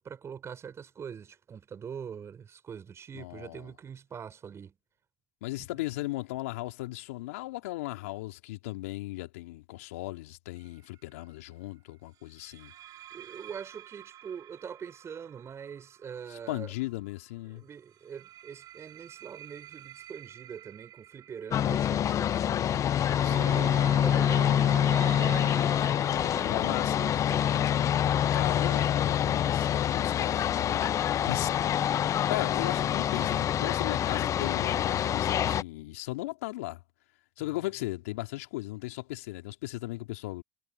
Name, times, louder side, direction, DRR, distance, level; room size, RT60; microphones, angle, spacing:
voice 1, 0.0-4.8 13.1-16.7 17.5-22.8 23.2-25.6 26.1-27.8 28.6-28.9 31.1-32.0 37.4-37.7, right 7 dB, 35° right, 6.4 m, -44 dB
voice 2, 3.1-3.7 5.4-12.7 16.3-17.6 23.2-23.8 26.4-27.0 28.3-31.5 32.3-36.8 37.4-40.4, left 19 dB, 75° left, 3.3 m, -37 dB
sound 1, 10.6-10.9 12.4-17.1 17.9-28.4, right 13 dB, 50° right, 3.9 m, -47 dB
sound 2, 21.5-35.6, left 10 dB, 40° left, 0.7 m, -26 dB
hypercardioid pair, 75°, 8 cm